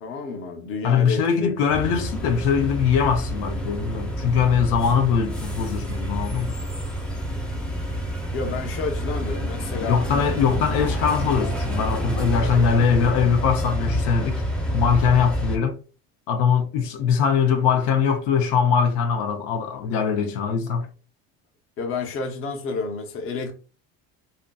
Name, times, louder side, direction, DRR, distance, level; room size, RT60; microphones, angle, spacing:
voice 1, 0.0-1.6 8.3-10.6 21.8-23.6, left 4 dB, 45° left, 0.7 m, -30 dB
voice 2, 0.8-6.6 9.8-14.4 14.7-15.8 16.3-20.9, left 6 dB, 85° left, 0.6 m, -22 dB
sound 1, 1.7-15.6, equal, 5° left, 0.5 m, -28 dB
2.7 x 2.5 x 2.2 m
cardioid pair, 125°, 30 cm